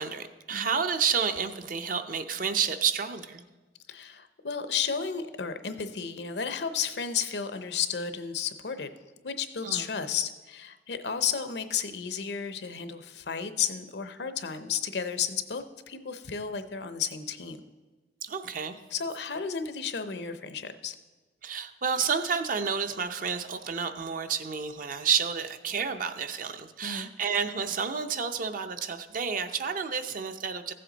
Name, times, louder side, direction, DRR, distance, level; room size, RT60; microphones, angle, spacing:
voice 1, 0.0-3.4 9.6-9.9 18.2-18.8 21.4-30.7, right 6 dB, 50° right, 8 dB, 0.6 m, -30 dB
voice 2, 3.9-8.9 9.2-17.6 18.9-21.0 26.8-27.1, left 7 dB, 70° left, 10 dB, 0.7 m, -33 dB
14.5 x 7.7 x 4.0 m, 1.2 s
head